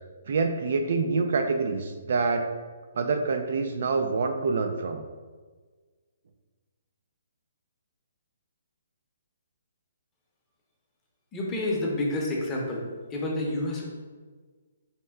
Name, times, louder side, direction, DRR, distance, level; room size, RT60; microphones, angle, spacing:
voice 1, 0.3-2.5 3.0-5.0, right 4 dB, 60° right, 6 dB, 0.3 m, -26 dB
voice 2, 11.3-12.8 13.1-13.8, left 1 dB, 15° left, -3 dB, 0.7 m, -29 dB
4.2 x 2.2 x 3.5 m, 1.4 s
hypercardioid pair, 155°, 0 cm